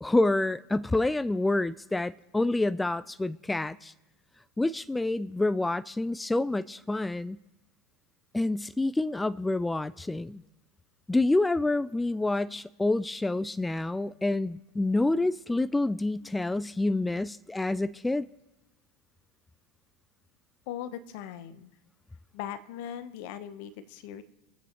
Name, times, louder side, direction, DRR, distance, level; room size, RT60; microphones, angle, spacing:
voice 1, 0.0-3.9 4.6-7.4 8.3-10.4 11.1-18.3, left 2 dB, 10° left, 0.3 m, -28 dB
voice 2, 20.7-21.7 22.3-24.2, left 10 dB, 60° left, 0.9 m, -39 dB
24.5 x 8.4 x 3.0 m
hypercardioid pair, 80°, 0 cm